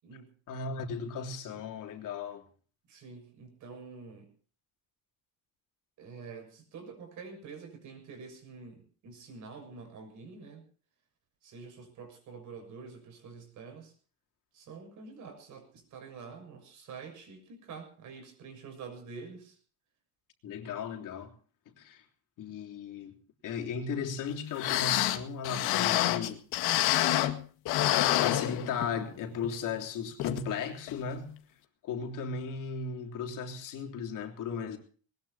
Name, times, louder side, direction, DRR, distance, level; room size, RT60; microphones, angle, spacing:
voice 1, 0.5-2.4 20.4-21.3 21.8-22.0 22.4-23.1 23.4-26.4 28.0-31.3 31.8-34.8, left 5 dB, 55° left, 3.3 m, -36 dB
voice 2, 2.9-4.3 6.0-10.6 11.4-13.9 14.5-19.6, right 5 dB, 50° right, 6.9 m, -47 dB
sound 1, 24.3-24.4 24.6-27.4 27.7-29.0 29.4-29.5 30.2-30.4 30.9-31.0, left 14 dB, 85° left, 1.9 m, -27 dB
20.5 x 20.5 x 2.8 m
cardioid pair, 175°, 37 cm